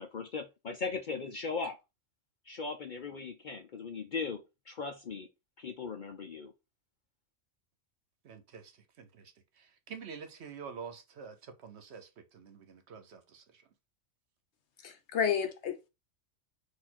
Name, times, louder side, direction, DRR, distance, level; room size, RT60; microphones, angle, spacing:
voice 1, 0.0-1.8 2.4-5.3 5.6-6.5, left 4 dB, 50° left, 0.6 m, -38 dB
voice 2, 8.2-13.7, right 6 dB, 65° right, 1.0 m, -48 dB
voice 3, 14.8-15.9, left 7 dB, 65° left, 1.1 m, -31 dB
4.3 x 2.6 x 4.2 m
omnidirectional pair, 1.3 m